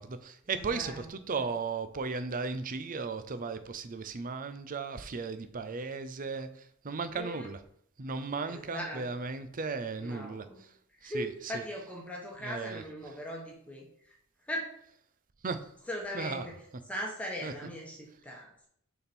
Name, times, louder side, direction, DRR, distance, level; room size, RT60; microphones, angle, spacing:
voice 1, 0.0-7.6 8.0-10.4 11.0-11.6 12.4-12.8 15.4-15.7 16.1-16.5 17.4-17.5, right 4 dB, 40° right, 10 dB, 0.6 m, -36 dB
voice 2, 0.5-1.1 1.3-1.5 7.1-7.5 8.4-9.1 10.0-10.6 11.0-14.2 14.5-14.7 15.9-16.6 16.9-18.7, equal, 5° left, -2 dB, 1.2 m, -39 dB
6.4 x 4.3 x 4.4 m, 0.69 s
head